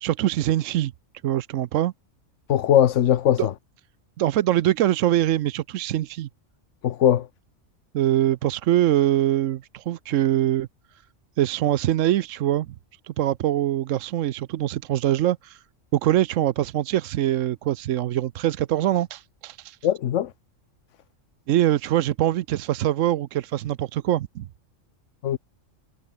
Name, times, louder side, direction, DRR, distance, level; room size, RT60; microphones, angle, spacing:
voice 1, 0.0-0.9 1.2-1.9 3.4-3.5 4.2-6.3 7.9-10.7 11.4-12.7 13.0-15.6 15.9-19.8 21.5-24.5, right 13 dB, 80° right, 1.0 m, -23 dB
voice 2, 2.5-3.5 6.8-7.3 19.8-20.3 25.2-25.4, left 10 dB, 70° left, 1.1 m, -20 dB
omnidirectional pair, 1.3 m